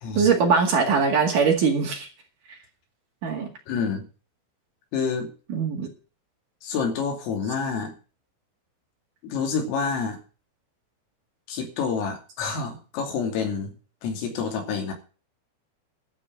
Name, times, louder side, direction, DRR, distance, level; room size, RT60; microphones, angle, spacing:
voice 1, 0.1-2.1 3.2-3.5 5.5-5.9, right 5 dB, 50° right, 1 dB, 2.9 m, -21 dB
voice 2, 3.7-4.0 4.9-5.3 6.6-7.9 9.2-10.2 11.5-13.8 14.0-14.9, left 5 dB, 85° left, 3 dB, 5.4 m, -28 dB
12.5 x 6.1 x 9.3 m, 0.36 s
omnidirectional pair, 5.9 m